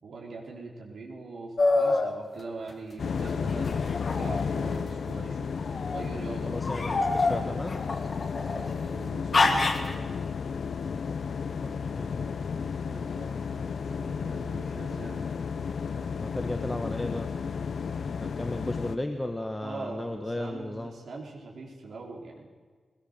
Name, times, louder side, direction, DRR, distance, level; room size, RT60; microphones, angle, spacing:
voice 1, 0.0-6.6 8.4-10.1 12.8-15.2 19.6-22.5, right 3 dB, 75° right, -2 dB, 4.2 m, -42 dB
sound 1, 1.6-2.1 3.6-4.8 5.6-6.0 6.6-8.7 9.3-9.9, left 3 dB, 40° left, 1.9 m, -26 dB
sound 2, 3.0-19.0, left 6 dB, 70° left, 0.9 m, -33 dB
voice 2, 6.4-7.8 11.6-12.4 16.2-17.3 18.2-20.9, left 1 dB, 10° left, 4 dB, 1.2 m, -34 dB
21.0 x 19.0 x 6.7 m, 1.6 s
wide cardioid pair, 150°, 0 cm